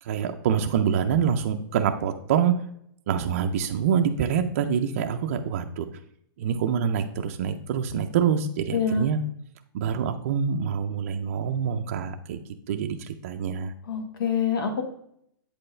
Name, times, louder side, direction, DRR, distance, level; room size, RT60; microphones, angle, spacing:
voice 1, 0.0-2.5 3.1-5.9 6.4-9.2 9.7-12.4 12.7-13.7, right 7 dB, 40° right, 5 dB, 0.4 m, -26 dB
voice 2, 8.7-9.1 13.9-14.8, left 6 dB, 80° left, 4 dB, 1.3 m, -25 dB
7.9 x 4.3 x 3.2 m, 0.70 s
hypercardioid pair, 170°, 12 cm